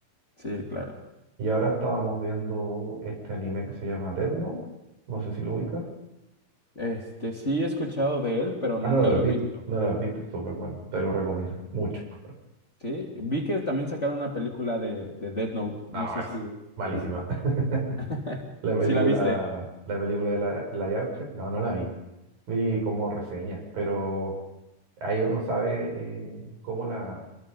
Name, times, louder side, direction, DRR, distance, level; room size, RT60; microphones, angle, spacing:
voice 1, 0.4-1.0 6.7-9.4 12.8-16.5 18.1-18.4 18.9-19.4, equal, 20° left, -1 dB, 3.0 m, -29 dB
voice 2, 1.4-4.6 5.1-5.9 8.8-9.4 9.7-12.0 15.9-16.3 16.8-17.8 18.6-21.9 22.5-24.4 25.0-27.2, right 2 dB, 80° right, 0 dB, 9.2 m, -28 dB
27.5 x 22.5 x 5.5 m, 0.96 s
omnidirectional pair, 4.0 m